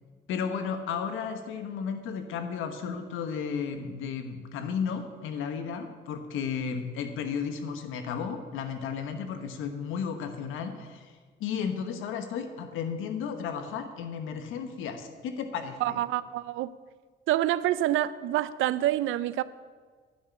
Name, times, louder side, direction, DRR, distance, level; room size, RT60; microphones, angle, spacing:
voice 1, 0.3-11.1 11.4-16.0, left 6 dB, 90° left, 7 dB, 1.2 m, -33 dB
voice 2, 15.8-16.7 17.3-19.4, right 13 dB, 85° right, 16 dB, 0.5 m, -27 dB
10.0 x 6.2 x 8.5 m, 1.5 s
cardioid pair, 90°, 20 cm